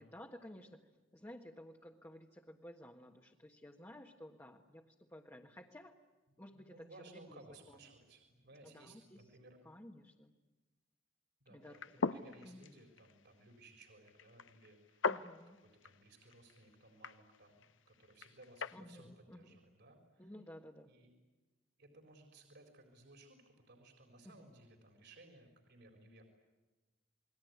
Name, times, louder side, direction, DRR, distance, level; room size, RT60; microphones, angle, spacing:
voice 1, 0.0-5.9 6.4-6.9 7.3-7.4 7.7-7.8 8.6-9.2 9.6-10.3 11.5-12.2 12.4-12.6 15.1-15.6 18.7-19.6 20.2-20.9 24.2-24.4, left 1 dB, 15° left, 1 dB, 1.5 m, -54 dB
voice 2, 6.5-9.6 11.4-15.1 15.5-20.3 20.8-21.1 21.8-26.2, right 2 dB, 60° right, 5 dB, 4.2 m, -60 dB
sound 1, 11.6-18.8, left 4 dB, 70° left, 0.9 m, -43 dB
28.5 x 20.5 x 9.5 m, 1.1 s
head